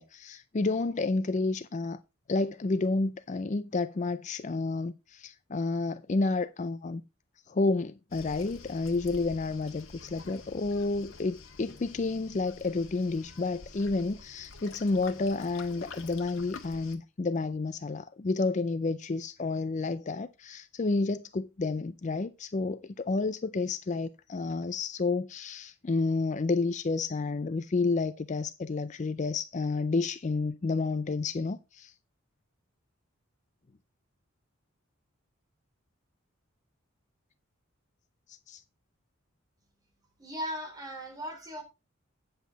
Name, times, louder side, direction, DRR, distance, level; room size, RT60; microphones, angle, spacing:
voice 1, 0.0-2.0 2.3-7.0 7.5-31.9 38.3-38.6, left 3 dB, 35° left, 0.4 m, -30 dB
Waves surf, 8.1-17.0, left 4 dB, 75° left, 1.7 m, -48 dB
voice 2, 40.2-41.6, equal, 20° right, 3.3 m, -37 dB
9.1 x 7.9 x 4.0 m
head